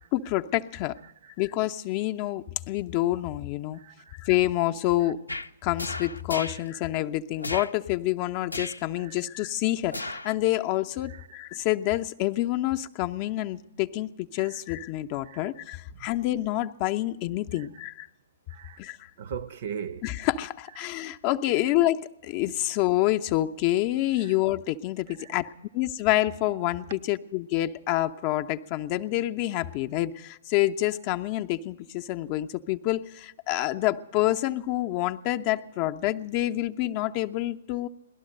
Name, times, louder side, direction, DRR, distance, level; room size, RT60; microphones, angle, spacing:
voice 1, 0.1-1.0 1.4-3.8 4.1-5.2 5.6-18.1 18.8-19.1 20.0-37.9, left 15 dB, 35° left, 0.6 m, -27 dB
voice 2, 3.7-4.2 5.0-5.1 6.4-6.6 9.0-9.2 11.0-11.3 14.3-14.6 15.2-15.5 15.9-16.1 17.5-17.7 18.5-18.8 19.2-20.1 24.2-24.4 25.1-25.4, right 8 dB, 50° right, 0.6 m, -41 dB
sound 1, 5.3-5.5 5.8-6.6 7.4-7.7 8.5-8.8 9.9-10.3 10.7-10.8, left 2 dB, 85° left, 0.6 m, -34 dB
18.0 x 12.0 x 6.4 m
figure-of-eight pair, 120°, 0 cm